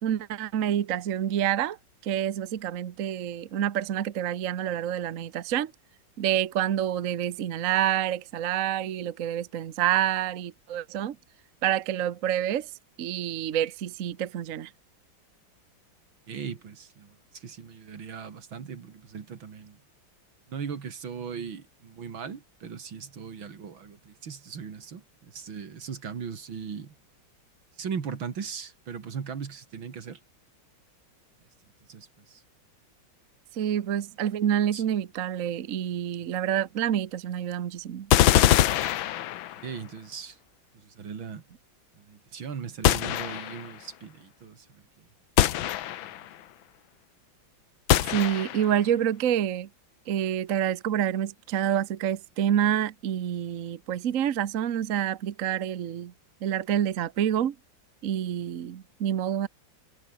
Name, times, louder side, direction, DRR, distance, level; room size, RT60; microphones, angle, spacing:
voice 1, 0.0-1.8 2.0-5.7 6.2-11.2 11.6-12.7 13.0-14.7 33.5-38.1 48.1-49.7 50.1-56.1 56.4-57.5 58.0-59.5, right 10 dB, 50° right, 1.1 m, -27 dB
voice 2, 16.3-19.8 20.5-26.9 27.8-30.2 31.9-32.4 34.7-34.8 39.6-40.4 40.7-41.4 42.0-45.0 46.0-46.1, right 6 dB, 80° right, 3.0 m, -39 dB
sound 1, 38.1-39.7 42.8-43.7 45.4-46.3 47.9-48.8, left 13 dB, 90° left, 1.6 m, -23 dB
omnidirectional pair, 2.1 m